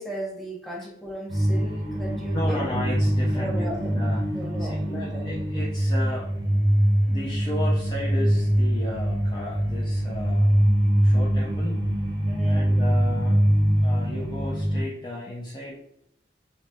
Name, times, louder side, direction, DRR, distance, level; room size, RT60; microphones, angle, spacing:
voice 1, 0.0-2.6 3.3-4.0 4.3-5.2 12.2-12.7, right 1 dB, ahead, -4 dB, 0.8 m, -36 dB
sound 1, 1.3-14.8, equal, 85° right, 0.9 m, -23 dB
voice 2, 2.3-4.3 4.6-6.3 7.1-10.6 11.0-11.9 12.4-15.8, left 1 dB, 25° left, -4 dB, 0.4 m, -34 dB
4.0 x 2.1 x 2.2 m, 0.76 s
head